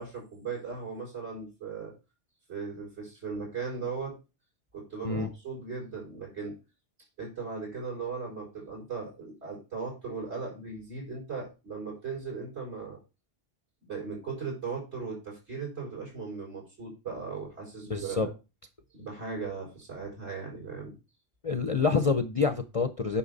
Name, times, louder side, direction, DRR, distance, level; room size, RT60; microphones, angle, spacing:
voice 1, 0.0-1.9 2.5-4.2 4.7-6.5 7.2-13.0 13.8-18.3 18.9-20.9, right 5 dB, 65° right, -2 dB, 5.2 m, -38 dB
voice 2, 17.9-18.3 21.4-23.2, left 4 dB, 40° left, 8 dB, 0.6 m, -27 dB
8.5 x 5.8 x 4.0 m, 0.29 s
omnidirectional pair, 1.2 m